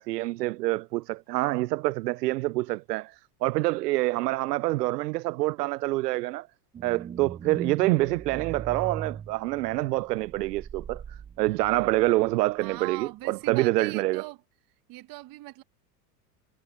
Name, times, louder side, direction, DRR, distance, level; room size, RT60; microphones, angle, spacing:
voice 1, 0.0-6.5 6.8-14.2, right 19 dB, 80° right, 0.6 m, -26 dB
sound 1, 6.7-12.4 12.8-12.9, right 7 dB, 15° right, 0.4 m, -40 dB
voice 2, 12.6-14.4 14.9-15.6, right 19 dB, 45° right, 1.4 m, -40 dB
hypercardioid pair, 100°, 47 cm